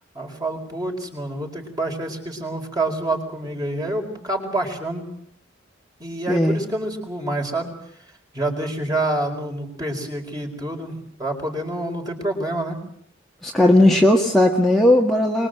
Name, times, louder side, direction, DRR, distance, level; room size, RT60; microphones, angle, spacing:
voice 1, 0.1-5.0 6.0-7.7 8.3-12.8, right 1 dB, 20° right, 2 dB, 4.9 m, -27 dB
voice 2, 6.3-6.6 13.4-15.5, left 1 dB, ahead, -1 dB, 1.7 m, -16 dB
24.5 x 22.0 x 7.9 m, 0.64 s
head